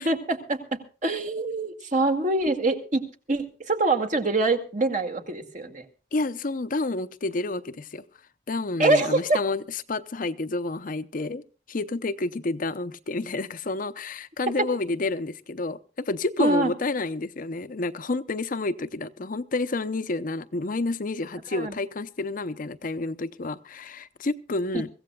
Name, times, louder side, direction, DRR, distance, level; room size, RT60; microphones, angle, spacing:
voice 1, 0.0-5.9 8.8-9.4 16.4-16.7 21.5-21.7 24.7-24.8, right 2 dB, 45° right, 6 dB, 2.0 m, -25 dB
voice 2, 6.1-8.0 8.5-9.6 9.9-11.4 11.7-24.9, left 2 dB, 50° left, 12 dB, 0.7 m, -29 dB
23.5 x 16.0 x 2.3 m, 0.37 s
head